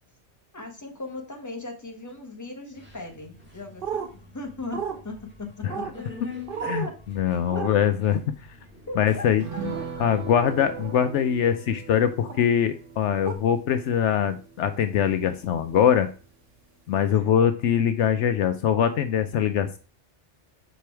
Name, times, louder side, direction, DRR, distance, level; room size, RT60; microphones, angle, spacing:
voice 1, 0.5-6.0 6.6-6.9 7.5-7.7 8.9-9.3 9.9-10.0 17.1-17.3, left 2 dB, 15° left, 2 dB, 1.2 m, -38 dB
Subway metro underground, 2.7-10.9, left 4 dB, 10° right, 1.7 m, -46 dB
sound 1, 3.8-4.1 4.7-5.0 5.7-5.9 6.5-6.9 7.5-7.7 9.7-9.9 10.8-11.0 12.3-12.4 13.3-13.4, right 7 dB, 50° right, 0.9 m, -32 dB
voice 2, 7.1-8.2 9.0-9.4 10.0-16.1 16.9-19.8, left 9 dB, 75° left, 9 dB, 0.9 m, -22 dB
sound 2, 9.4-16.2 16.5-16.6 16.9-17.1, right 5 dB, 75° right, 1.8 m, -40 dB
5.1 x 4.5 x 4.4 m, 0.39 s
omnidirectional pair, 1.3 m